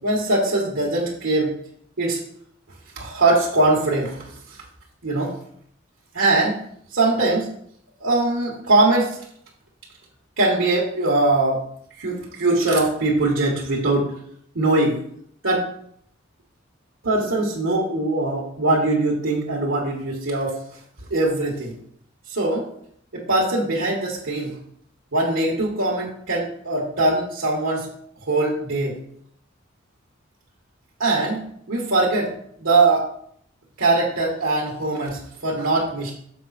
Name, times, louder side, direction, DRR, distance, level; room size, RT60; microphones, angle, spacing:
voice 1, 0.0-1.5 2.0-2.2 2.9-4.2 5.0-5.3 6.1-6.6 6.9-7.5 8.0-9.2 10.4-11.6 12.0-14.1 14.5-15.0 15.4-15.7 17.0-20.6 21.1-21.7 22.3-22.7 23.1-24.5 25.1-27.9 28.3-29.0 31.0-32.3 32.6-33.1 33.8-36.1, right 2 dB, 80° right, -5 dB, 1.7 m, -21 dB
7.2 x 5.1 x 4.2 m, 0.66 s
head